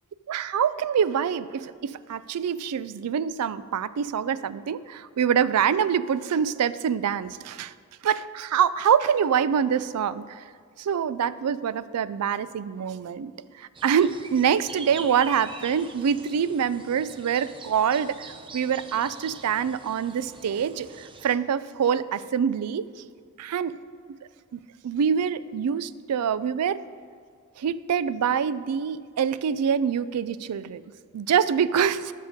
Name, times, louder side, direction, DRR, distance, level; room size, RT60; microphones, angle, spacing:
voice 1, 0.3-7.7 8.0-10.4 10.8-13.3 13.6-22.9 23.4-23.7 24.5-26.8 27.6-30.8 31.1-32.1, right 7 dB, 90° right, 16 dB, 0.4 m, -25 dB
sound 1, 13.7-21.4, right 4 dB, 25° right, 0.6 m, -44 dB
10.5 x 6.6 x 5.2 m, 2.1 s
head